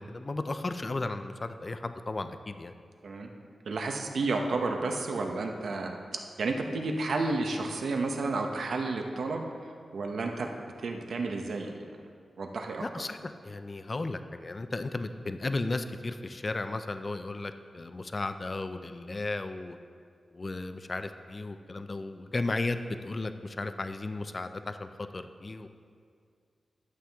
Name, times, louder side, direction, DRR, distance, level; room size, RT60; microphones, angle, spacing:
voice 1, 0.0-2.7 12.8-19.8 20.3-24.9 25.1-25.7, left 2 dB, 30° left, 9 dB, 0.4 m, -35 dB
voice 2, 3.7-10.5 10.8-11.9 12.4-12.8, right 3 dB, 75° right, 3 dB, 0.8 m, -31 dB
11.0 x 7.4 x 3.5 m, 2.2 s
wide cardioid pair, 160°, 0 cm